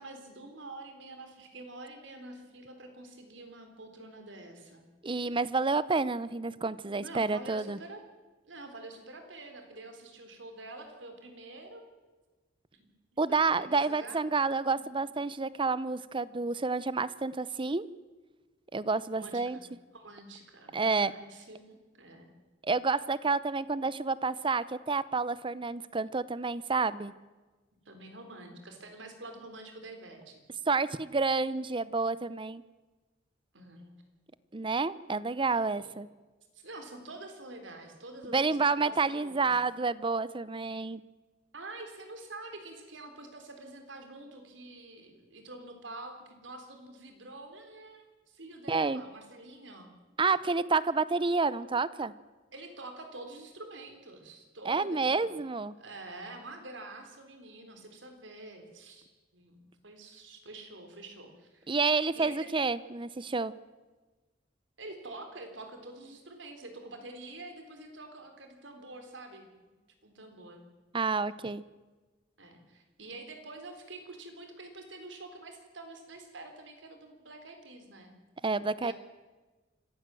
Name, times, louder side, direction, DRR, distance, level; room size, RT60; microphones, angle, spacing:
voice 1, 0.0-4.8 6.9-8.0 8.5-11.8 12.7-14.3 14.8-14.9 19.2-19.7 19.9-22.3 27.9-30.5 33.5-33.9 35.8-36.0 36.5-39.6 41.5-49.9 52.5-55.3 55.8-59.1 59.3-61.7 62.1-62.5 64.8-69.5 70.0-70.7 72.4-78.2 78.8-78.9, right 2 dB, 85° right, 5 dB, 3.8 m, -47 dB
voice 2, 5.0-7.8 13.2-17.8 18.7-19.6 20.7-21.1 22.6-27.1 30.7-32.6 34.5-36.1 38.3-41.0 48.7-49.0 50.2-52.1 54.7-55.7 61.7-63.5 70.9-71.6 78.4-78.9, right 4 dB, 25° right, 18 dB, 0.7 m, -29 dB
26.0 x 15.0 x 7.7 m, 1.3 s
head